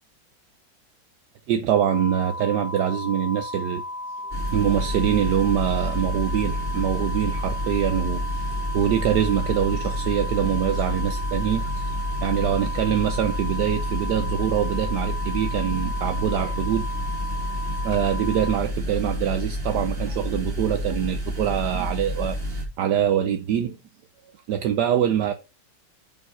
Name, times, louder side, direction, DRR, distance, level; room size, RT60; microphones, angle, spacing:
voice 1, 1.5-3.8 4.5-8.4 8.7-16.9 17.8-23.8 24.5-25.3, right 10 dB, 70° right, 1.2 m, -24 dB
sound 1, 1.7-18.6, left 2 dB, 90° left, 1.5 m, -34 dB
sound 2, 4.3-22.6, equal, 30° right, 2.9 m, -29 dB
6.0 x 4.6 x 5.7 m
omnidirectional pair, 2.0 m